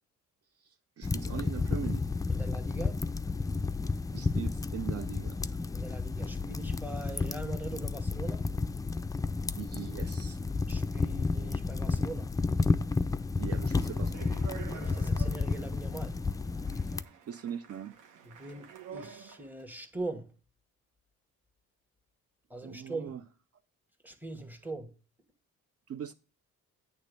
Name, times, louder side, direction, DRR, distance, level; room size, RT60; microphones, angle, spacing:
voice 1, 0.6-2.0 2.3-2.4 4.1-5.4 9.5-10.4 13.4-14.4 14.7-14.8 17.3-18.0 22.6-23.2 25.9-26.1, right 9 dB, 55° right, 0.6 m, -41 dB
sound 1, 1.0-17.0, left 3 dB, 10° left, 0.3 m, -31 dB
voice 2, 2.3-3.0 5.7-8.5 10.7-12.3 14.7-16.2 18.3-20.3 22.5-23.2 24.0-24.9, right 2 dB, 5° right, 1.3 m, -41 dB
Speech, 13.8-19.6, right 8 dB, 90° right, 1.2 m, -49 dB
8.6 x 3.5 x 6.7 m
cardioid pair, 90°, 30 cm